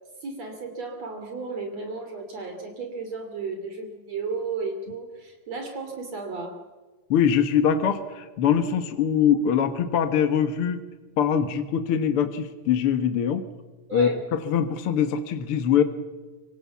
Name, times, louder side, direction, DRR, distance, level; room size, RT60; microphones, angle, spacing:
voice 1, 0.2-6.6 13.9-14.2, right 4 dB, 55° right, 5 dB, 4.0 m, -34 dB
voice 2, 7.1-10.8 11.2-13.4 13.9-15.8, left 8 dB, 55° left, 9 dB, 1.9 m, -23 dB
25.5 x 25.0 x 7.2 m, 1.3 s
omnidirectional pair, 3.5 m